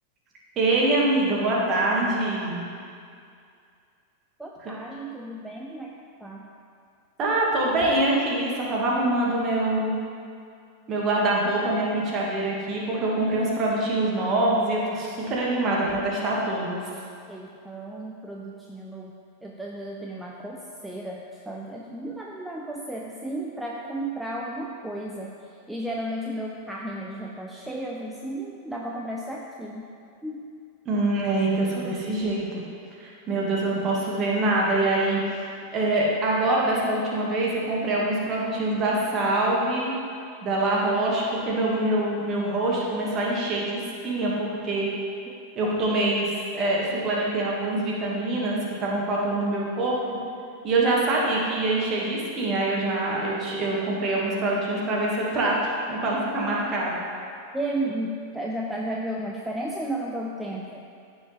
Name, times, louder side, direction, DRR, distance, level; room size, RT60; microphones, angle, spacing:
voice 1, 0.6-2.6 7.2-10.0 10.9-16.8 30.9-32.6 33.0-35.2 35.7-39.9 40.4-44.9 45.6-50.0 50.6-57.0, right 2 dB, 30° right, -4 dB, 2.0 m, -24 dB
voice 2, 4.4-6.5 17.3-29.9 30.2-30.5 45.3-45.4 45.6-45.7 57.5-60.8, right 1 dB, 5° right, -2 dB, 0.6 m, -34 dB
14.0 x 5.4 x 3.5 m, 2.4 s
figure-of-eight pair, 90°, 0 cm